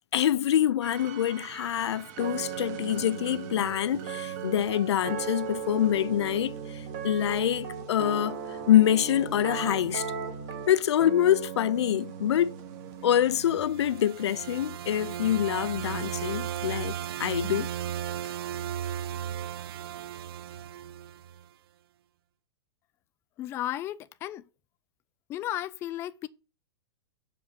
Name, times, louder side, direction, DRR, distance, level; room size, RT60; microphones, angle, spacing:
voice 1, 0.1-8.4 8.7-10.1 10.7-12.5 13.0-16.9 17.2-17.7, left 11 dB, 90° left, 0.5 m, -25 dB
sound 1, 0.8-13.6, right 7 dB, 40° right, 1.5 m, -37 dB
sound 2, 13.3-21.5, right 10 dB, 65° right, 0.4 m, -35 dB
voice 2, 23.4-24.4 25.3-26.3, left 13 dB, 20° left, 0.3 m, -34 dB
7.0 x 5.0 x 6.9 m
hypercardioid pair, 155°, 14 cm